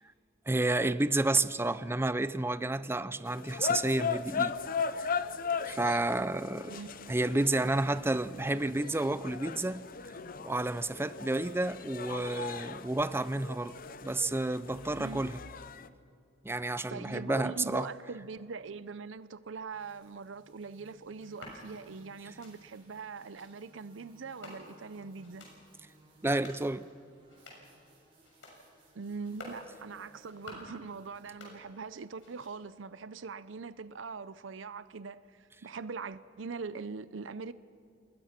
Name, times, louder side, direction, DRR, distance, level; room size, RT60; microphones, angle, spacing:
voice 1, 0.5-4.5 5.7-6.8 7.1-10.1 10.4-13.7 14.0-15.4 16.4-17.9 26.2-26.9, right 2 dB, 15° right, 0.5 m, -30 dB
sound 1, 3.3-15.9, left 6 dB, 50° left, 0.7 m, -38 dB
voice 2, 6.7-7.1 15.0-15.2 16.6-25.4 28.9-37.5, right 4 dB, 90° right, 0.6 m, -42 dB
sound 2, 19.7-32.4, right 1 dB, 30° right, 6.3 m, -62 dB
sound 3, 21.2-21.6 22.2-22.5 23.2-23.5 24.2-24.9 25.2-25.6 26.2-26.6 27.2-27.7 28.2-28.6 29.2-29.6 30.2-30.8 31.2-31.9 32.2-32.8, left 2 dB, 85° left, 6.5 m, -51 dB
28.0 x 20.0 x 5.9 m
head